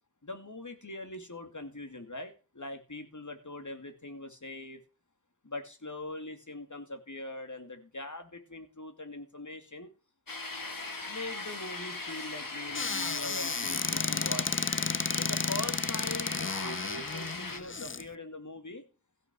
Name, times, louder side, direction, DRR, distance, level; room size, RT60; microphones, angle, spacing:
voice 1, 0.2-4.8 5.4-9.9 11.1-14.6 15.2-18.8, left 2 dB, 60° left, 7 dB, 2.7 m, -42 dB
sound 1, 10.3-17.6, left 3 dB, 75° left, 2.3 m, -39 dB
Squeak / Cupboard open or close, 12.7-18.0, left 5 dB, 35° left, 0.6 m, -32 dB
15.5 x 6.0 x 6.2 m, 0.34 s
wide cardioid pair, 45°, 34 cm